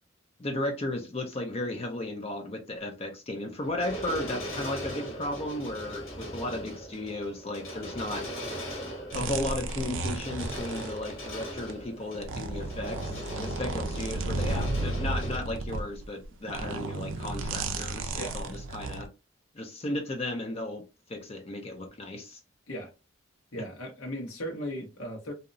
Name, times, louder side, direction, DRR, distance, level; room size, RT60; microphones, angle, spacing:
voice 1, 0.4-8.6 9.1-19.1 19.5-20.8 21.1-22.4 23.6-23.7, left 1 dB, 30° left, 0.4 m, -35 dB
sound 1, 3.5-15.4, equal, 65° left, 1.3 m, -39 dB
sound 2, 9.1-11.7 12.1-19.1, right 2 dB, 65° right, 0.4 m, -33 dB
voice 2, 23.5-25.3, equal, 90° left, 1.0 m, -37 dB
2.7 x 2.1 x 2.5 m
head